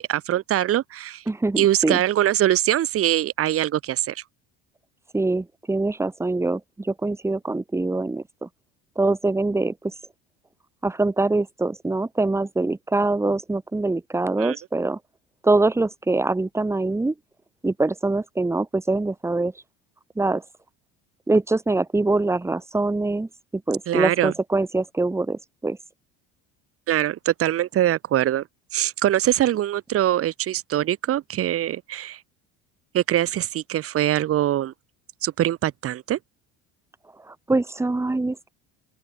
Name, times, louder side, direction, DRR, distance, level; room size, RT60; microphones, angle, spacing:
voice 1, 0.0-1.2 1.6-4.2 14.4-14.6 23.9-24.3 26.9-28.4 28.7-32.2 32.9-34.7 35.2-36.2, right 12 dB, 40° right, 1.2 m, -23 dB
voice 2, 1.3-2.0 5.1-8.5 9.0-9.9 10.8-15.0 15.4-17.1 17.6-19.5 20.2-20.4 21.3-23.3 23.7-25.8 37.3-38.5, right 2 dB, 10° right, 1.4 m, -24 dB
open air
cardioid pair, 140°, 35 cm